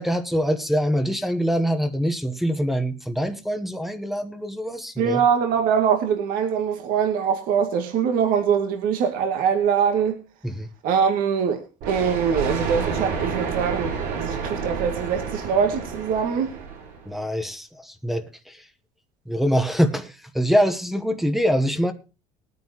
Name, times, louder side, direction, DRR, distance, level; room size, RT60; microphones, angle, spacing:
voice 1, 0.0-5.2 10.4-10.7 17.1-18.6 19.3-21.9, equal, ahead, 1.0 m, -24 dB
voice 2, 5.0-10.2 10.8-11.6 11.9-16.5, right 7 dB, 70° right, 2.2 m, -23 dB
Thunder, 11.8-17.2, right 5 dB, 85° right, 5.9 m, -29 dB
21.0 x 9.5 x 3.0 m
cardioid pair, 135°, 15 cm